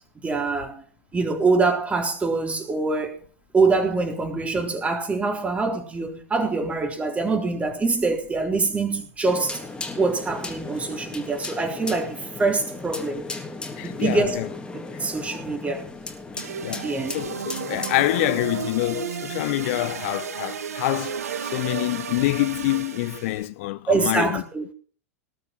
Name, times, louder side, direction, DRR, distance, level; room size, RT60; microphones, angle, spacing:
voice 1, 0.2-0.8 1.1-3.2 3.5-9.6 10.0-13.2 13.8-14.4 14.7-15.9 16.8-17.1 23.9-24.6, right 3 dB, 15° right, 3.9 m, -24 dB
sound 1, 9.3-18.5, left 3 dB, 10° left, 3.3 m, -36 dB
voice 2, 13.8-14.5 16.6-24.4, left 18 dB, 55° left, 0.8 m, -26 dB
sound 2, 16.4-23.5, right 7 dB, 80° right, 1.7 m, -33 dB
19.5 x 7.0 x 7.5 m
hypercardioid pair, 100°, 8 cm